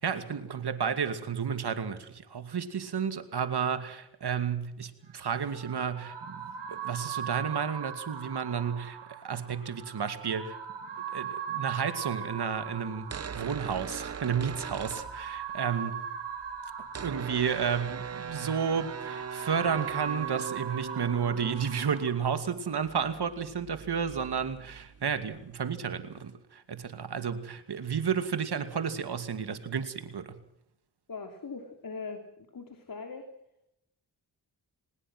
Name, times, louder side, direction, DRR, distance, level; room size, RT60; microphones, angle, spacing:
voice 1, 0.0-10.6 11.1-16.0 17.0-30.4, right 7 dB, 65° right, 10 dB, 2.6 m, -32 dB
sound 1, 5.1-22.1, right 8 dB, 85° right, 3.5 m, -40 dB
sound 2, 13.0-15.7 16.0-25.7, right 6 dB, 35° right, 0.8 m, -41 dB
voice 2, 31.1-32.2 32.5-33.3, left 4 dB, 50° left, 6 dB, 3.1 m, -40 dB
24.0 x 20.0 x 6.2 m, 0.80 s
cardioid pair, 60°, 42 cm